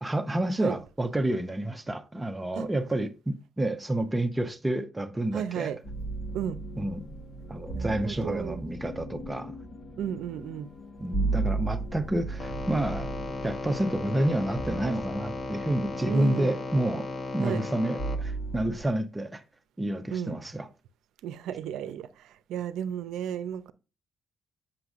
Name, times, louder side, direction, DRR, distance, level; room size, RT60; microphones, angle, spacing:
voice 1, 0.0-5.7 6.8-7.0 7.5-9.5 11.0-13.1 13.4-17.1 17.3-19.4 19.8-20.7, right 1 dB, 15° right, 0.8 m, -29 dB
voice 2, 5.3-5.8 6.3-6.6 7.7-8.6 10.0-10.7 16.1-16.5 17.4-17.6 20.1-20.4 21.2-23.7, right 9 dB, 85° right, 0.5 m, -34 dB
sound 1, 5.8-18.9, right 3 dB, 60° left, 1.6 m, -36 dB
sound 2, 12.4-18.2, left 3 dB, 40° left, 1.0 m, -36 dB
7.7 x 6.1 x 2.4 m
cardioid pair, 90°, 0 cm